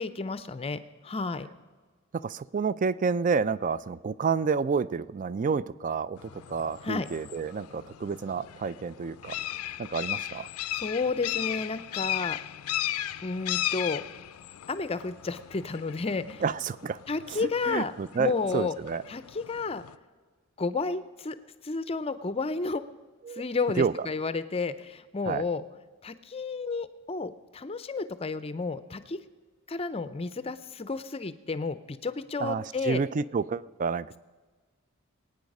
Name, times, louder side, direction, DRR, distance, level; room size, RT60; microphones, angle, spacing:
voice 1, 0.0-1.5 6.8-7.1 10.8-12.4 13.2-14.0 14.7-16.4 17.1-18.7 19.1-19.8 20.6-21.4 21.6-22.8 23.3-25.6 26.0-29.2 29.7-33.0, left 4 dB, 25° left, 13 dB, 0.5 m, -31 dB
voice 2, 2.1-9.4 9.8-10.5 16.4-17.0 17.3-19.0 23.3-23.4 23.8-23.9 25.3-25.4 32.4-34.2, right 5 dB, 35° right, 18 dB, 0.3 m, -29 dB
sound 1, 6.2-20.0, left 13 dB, 85° left, 0.5 m, -37 dB
22.5 x 9.3 x 5.3 m, 1.4 s
head